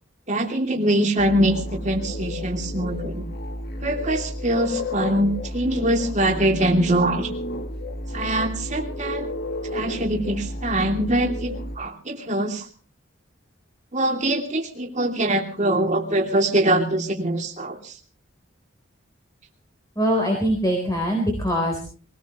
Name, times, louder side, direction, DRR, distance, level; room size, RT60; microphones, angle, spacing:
voice 1, 0.3-3.2 3.8-7.3 8.1-9.3 9.7-12.7 13.9-17.9, right 1 dB, 35° right, 2 dB, 2.8 m, -23 dB
sound 1, 1.2-11.8, left 1 dB, 50° left, 1.8 m, -32 dB
voice 2, 20.0-21.8, equal, 15° left, 1 dB, 3.9 m, -22 dB
23.0 x 18.0 x 3.1 m, 0.39 s
head